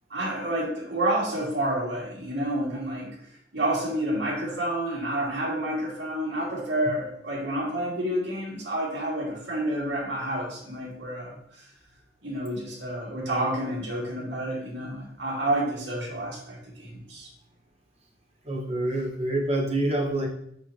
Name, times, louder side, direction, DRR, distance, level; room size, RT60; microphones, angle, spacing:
voice 1, 0.1-3.1 3.5-11.7 12.2-17.3, right 1 dB, 75° right, -3 dB, 2.1 m, -29 dB
voice 2, 18.4-20.3, right 1 dB, 35° right, -1 dB, 1.2 m, -26 dB
5.7 x 5.6 x 2.9 m, 0.72 s
head